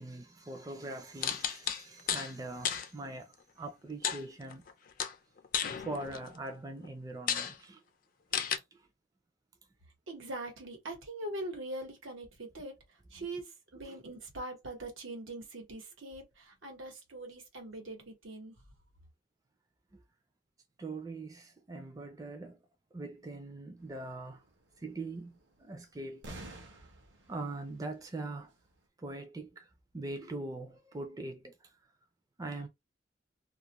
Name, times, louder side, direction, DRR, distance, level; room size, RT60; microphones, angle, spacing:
voice 1, 0.0-4.6 5.8-7.8 8.7-8.8 13.9-14.0 20.8-22.6 22.9-24.4 24.8-26.7 27.3-28.5 29.0-29.7 29.9-31.7 32.4-32.7, right 2 dB, 20° right, 0.4 m, -42 dB
sound 1, 1.2-2.3 2.6-2.9 4.0-4.7 5.0-6.4 6.8-6.9 7.3-7.5 8.3-8.6, left 8 dB, 45° left, 0.4 m, -33 dB
voice 2, 10.1-12.8 13.1-18.5, right 1 dB, 90° right, 1.0 m, -42 dB
sound 2, 23.8-28.8, right 2 dB, 65° right, 0.7 m, -51 dB
2.3 x 2.1 x 2.8 m
head